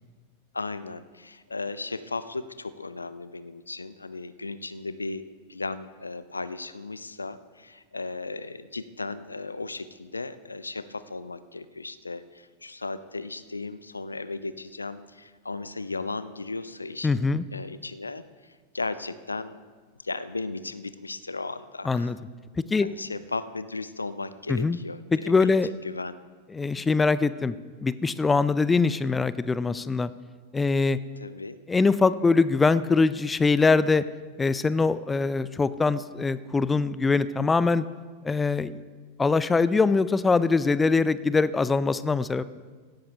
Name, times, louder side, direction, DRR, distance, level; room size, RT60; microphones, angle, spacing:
voice 1, 0.5-5.2 5.5-17.2 17.5-19.6 20.0-22.1 22.8-26.2 26.6-26.7 31.2-31.6, left 3 dB, 80° left, 14 dB, 0.4 m, -36 dB
voice 2, 17.0-17.4 21.9-22.2 22.7-22.9 24.5-24.8 25.1-25.7 26.5-27.5 27.8-30.1 30.5-31.0 31.7-34.0 34.4-37.8 38.2-38.8 39.2-42.4, left 4 dB, 15° left, 16 dB, 0.4 m, -23 dB
17.0 x 12.5 x 2.9 m, 1.4 s
figure-of-eight pair, 90°, 0 cm